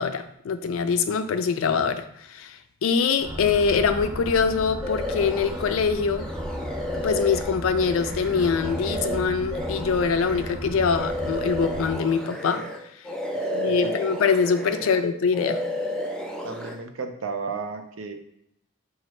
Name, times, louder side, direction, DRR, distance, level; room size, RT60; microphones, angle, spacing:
voice 1, 0.0-6.3 7.0-12.7 13.5-15.6, left 5 dB, 90° left, 10 dB, 0.4 m, -24 dB
sound 1, 3.2-11.9, right 1 dB, 15° right, 0.8 m, -35 dB
sound 2, 4.8-5.8 6.2-12.8 13.0-15.0 15.3-16.7, left 1 dB, 5° left, 0.3 m, -32 dB
voice 2, 16.4-18.1, right 4 dB, 85° right, 5 dB, 0.6 m, -33 dB
5.0 x 2.5 x 3.1 m, 0.76 s
head